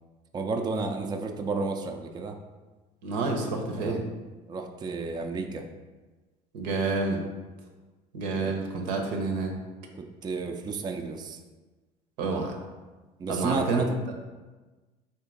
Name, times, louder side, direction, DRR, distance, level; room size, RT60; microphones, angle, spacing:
voice 1, 0.3-2.4 3.8-4.0 4.5-5.7 8.3-8.5 10.0-11.4 13.2-14.0, right 4 dB, 20° right, 4 dB, 0.4 m, -32 dB
voice 2, 3.0-4.0 6.5-7.2 8.1-9.5 12.2-12.5 13.3-14.1, right 3 dB, 80° right, 2 dB, 0.7 m, -29 dB
3.5 x 2.7 x 3.9 m, 1.2 s
hypercardioid pair, 70°, 21 cm